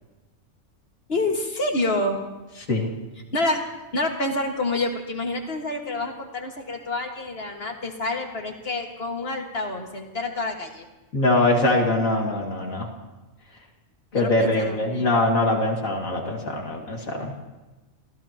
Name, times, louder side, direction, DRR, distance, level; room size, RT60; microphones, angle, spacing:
voice 1, 1.1-2.2 3.3-3.6 3.9-10.9 14.1-15.1, left 2 dB, 45° left, 2 dB, 2.1 m, -28 dB
voice 2, 11.1-12.9 14.1-17.3, left 2 dB, 75° left, 0 dB, 2.7 m, -22 dB
29.0 x 16.0 x 3.0 m, 1.1 s
omnidirectional pair, 1.4 m